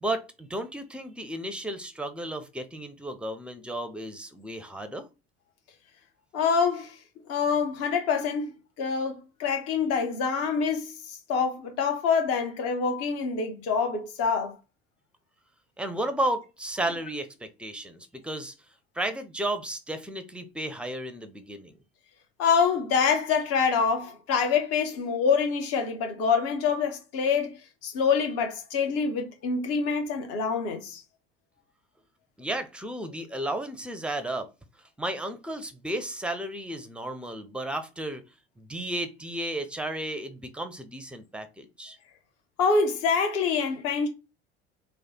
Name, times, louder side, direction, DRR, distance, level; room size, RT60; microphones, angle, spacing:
voice 1, 0.0-5.1 15.8-18.5 19.0-21.8 32.4-34.5 35.0-38.2 38.6-42.0, right 1 dB, 5° right, 0.5 m, -33 dB
voice 2, 6.3-7.0 7.3-10.9 11.3-14.5 22.4-27.5 27.8-31.0 42.6-44.1, left 5 dB, 50° left, 1.0 m, -26 dB
3.2 x 2.1 x 4.1 m
figure-of-eight pair, 65°, 31 cm